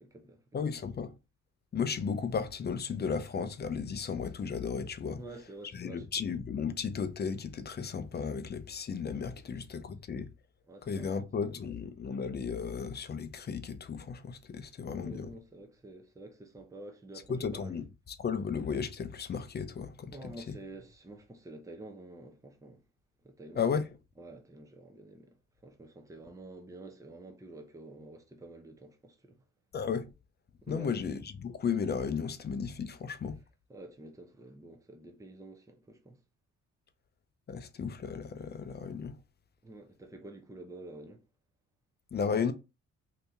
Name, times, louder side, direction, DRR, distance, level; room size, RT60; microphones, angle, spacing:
voice 1, 0.0-0.4 5.2-6.1 9.3-9.5 10.7-11.2 14.9-17.8 20.1-22.8 23.2-23.9 24.2-25.4 25.6-29.4 30.6-31.0 33.7-36.2 39.6-41.2, right 2 dB, 10° right, 0.7 m, -49 dB
voice 2, 0.5-1.1 1.7-5.2 5.7-10.3 10.9-15.3 17.3-20.2 20.5-20.6 23.6-23.9 29.7-30.1 30.7-33.4 37.5-39.2 42.1-42.5, left 6 dB, 35° left, 0.5 m, -34 dB
2.8 x 2.7 x 3.5 m
cardioid pair, 90°, 30 cm